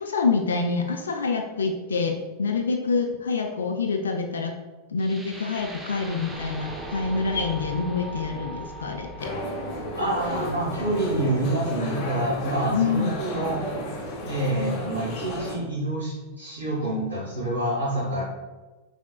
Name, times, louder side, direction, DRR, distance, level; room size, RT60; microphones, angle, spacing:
voice 1, 0.0-4.5 4.9-9.3 12.7-13.1, left 4 dB, 70° left, 3 dB, 0.4 m, -26 dB
sound 1, 5.0-13.0, right 1 dB, 10° right, 0.6 m, -40 dB
sound 2, 9.2-15.5, left 1 dB, 35° left, 0.9 m, -33 dB
voice 2, 10.0-13.6 14.2-18.2, right 1 dB, 80° right, -11 dB, 1.5 m, -27 dB
5.8 x 3.5 x 2.3 m, 1.2 s
figure-of-eight pair, 90°, 0 cm